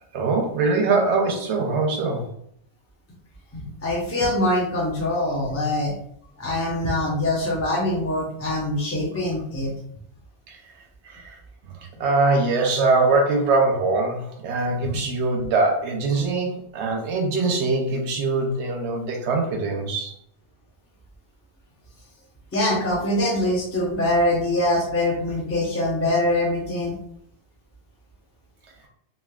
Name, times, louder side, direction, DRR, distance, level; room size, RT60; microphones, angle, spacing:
voice 1, 0.1-2.3 10.5-10.7 11.0-11.4 11.8-20.1, right 3 dB, 90° right, 1 dB, 0.9 m, -22 dB
voice 2, 3.5-5.9 6.4-9.7 22.5-27.0, left 1 dB, 20° left, -4 dB, 0.5 m, -23 dB
3.3 x 2.6 x 2.3 m, 0.70 s
omnidirectional pair, 1.1 m